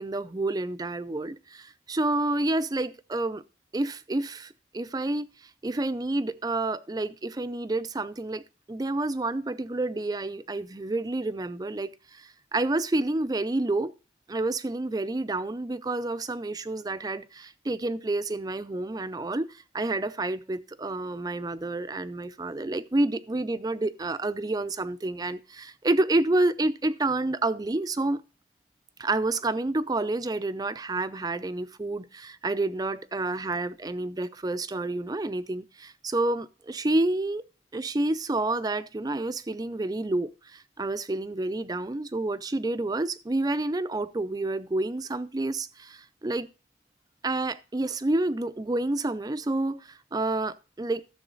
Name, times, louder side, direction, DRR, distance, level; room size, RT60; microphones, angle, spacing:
voice 1, 0.0-3.4 3.7-8.4 8.7-13.9 14.3-28.2 29.0-37.4 37.7-46.5 47.2-51.0, right 2 dB, 20° right, 0.4 m, -29 dB
13.0 x 7.1 x 3.9 m
head